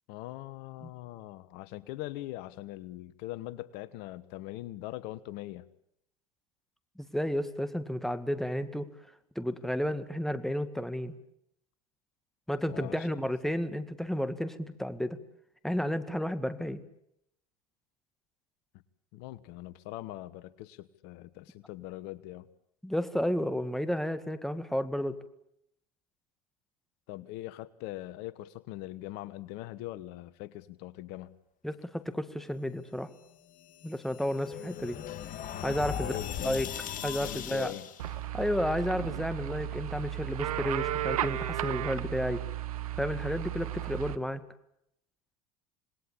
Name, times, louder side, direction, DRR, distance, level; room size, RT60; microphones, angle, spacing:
voice 1, 0.1-5.7 12.7-13.1 19.1-22.5 27.1-31.3 35.8-36.7 37.2-37.9, left 16 dB, 65° left, 17 dB, 1.3 m, -41 dB
voice 2, 7.0-8.9 9.4-11.1 12.5-15.2 15.6-16.8 22.8-25.2 31.6-33.1 33.8-35.0 35.6-36.7 37.0-37.7 38.3-42.4 43.0-44.4, equal, ahead, 11 dB, 2.0 m, -32 dB
sound 1, 33.6-38.1, left 9 dB, 45° left, 2.0 m, -39 dB
sound 2, 38.0-44.2, right 13 dB, 85° right, 1.1 m, -34 dB
27.0 x 20.0 x 8.7 m, 0.76 s
hypercardioid pair, 85°, 18 cm